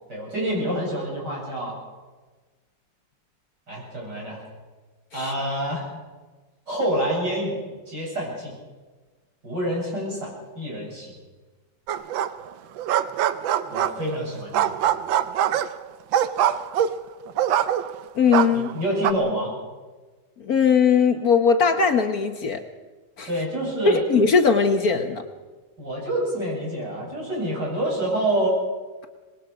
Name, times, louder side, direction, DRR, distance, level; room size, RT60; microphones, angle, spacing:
voice 1, 0.1-1.8 3.7-4.4 5.1-5.9 6.7-7.6 7.9-8.5 9.4-11.1 13.7-14.9 18.5-19.5 23.3-24.0 25.8-28.6, right 1 dB, 60° right, -3 dB, 8.6 m, -27 dB
sound 1, 11.9-12.5 12.8-14.2 14.5-18.0 18.3-19.1, right 10 dB, 85° right, 1.5 m, -23 dB
voice 2, 18.2-18.7 20.4-22.6 23.2-23.3 23.9-25.2, left 5 dB, 55° left, 6 dB, 1.5 m, -19 dB
25.5 x 20.5 x 5.0 m, 1.3 s
omnidirectional pair, 2.0 m